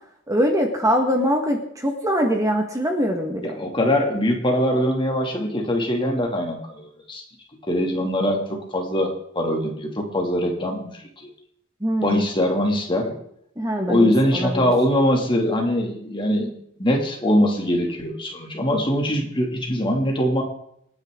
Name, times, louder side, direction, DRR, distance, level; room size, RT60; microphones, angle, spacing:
voice 1, 0.3-3.5 11.8-12.2 13.6-14.7, equal, 15° right, 3 dB, 1.6 m, -23 dB
voice 2, 3.4-7.2 7.7-11.3 12.0-13.2 13.9-16.5 16.8-20.4, equal, 25° left, 1 dB, 2.6 m, -22 dB
27.5 x 9.9 x 3.8 m, 0.72 s
head